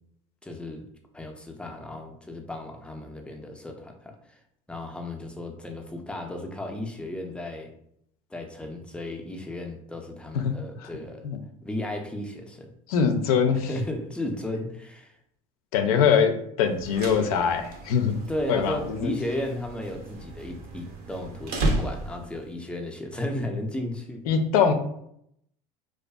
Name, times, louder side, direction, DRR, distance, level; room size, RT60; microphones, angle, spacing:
voice 1, 0.4-0.8 1.1-4.4 4.7-7.7 8.3-11.3 11.6-12.7 13.7-15.1 18.3-24.2, left 1 dB, 5° left, 2 dB, 0.4 m, -34 dB
voice 2, 10.3-10.9 11.2-11.4 12.9-13.7 15.7-18.2 18.5-19.1 24.3-24.7, left 7 dB, 85° left, 6 dB, 0.4 m, -23 dB
sound 1, 16.7-22.4, right 2 dB, 60° right, 0.6 m, -33 dB
2.5 x 2.3 x 2.2 m, 0.72 s
supercardioid pair, 95°, 18 cm